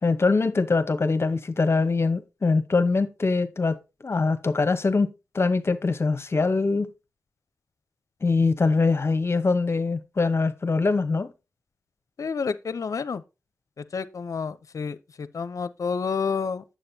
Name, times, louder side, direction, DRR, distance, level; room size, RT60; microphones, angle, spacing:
voice 1, 0.0-5.1 5.3-6.9 8.2-11.3, left 3 dB, 45° left, 1.0 m, -23 dB
voice 2, 12.2-13.2 13.8-16.6, left 5 dB, 65° left, 0.7 m, -29 dB
8.7 x 7.4 x 2.8 m
cardioid pair, 50°, 6 cm